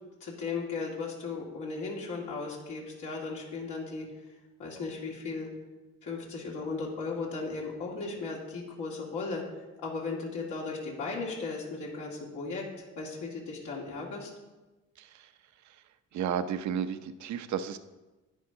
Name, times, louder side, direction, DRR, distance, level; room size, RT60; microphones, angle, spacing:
voice 1, 0.2-4.1 4.6-5.5 6.0-9.4 9.8-12.6 13.0-14.3, left 4 dB, 80° left, -4 dB, 2.5 m, -36 dB
voice 2, 15.0-15.3 15.6-15.8 16.1-17.8, right 8 dB, 70° right, 10 dB, 0.7 m, -33 dB
10.5 x 9.4 x 3.8 m, 1.1 s
cardioid pair, 90°, 30 cm